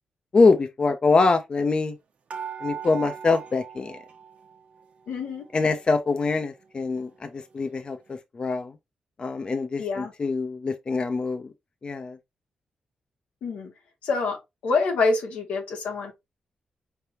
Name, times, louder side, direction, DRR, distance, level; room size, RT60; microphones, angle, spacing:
voice 1, 0.3-1.9 2.6-4.0 5.5-8.7 9.2-11.5 11.8-12.2, left 4 dB, 40° left, 0.6 m, -24 dB
sound 1, 2.3-4.8 5.1-6.1 6.6-6.7 7.0-7.1, right 7 dB, 65° right, 0.9 m, -39 dB
voice 2, 5.1-5.4 9.8-10.1 13.4-13.7 14.0-14.4 14.6-16.1, left 4 dB, 90° left, 1.3 m, -26 dB
4.5 x 3.4 x 2.8 m
cardioid pair, 80°, 2 cm